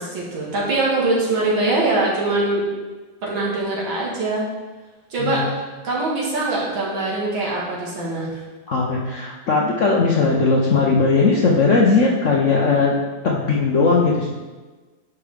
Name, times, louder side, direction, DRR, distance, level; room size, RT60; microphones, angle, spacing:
voice 1, 0.0-2.7 3.2-4.5 5.1-5.4 5.8-8.4, right 2 dB, 90° right, -4 dB, 2.5 m, -22 dB
voice 2, 8.7-13.0 13.2-14.3, left 4 dB, 65° left, -2 dB, 0.7 m, -18 dB
10.0 x 4.8 x 3.4 m, 1.3 s
omnidirectional pair, 2.1 m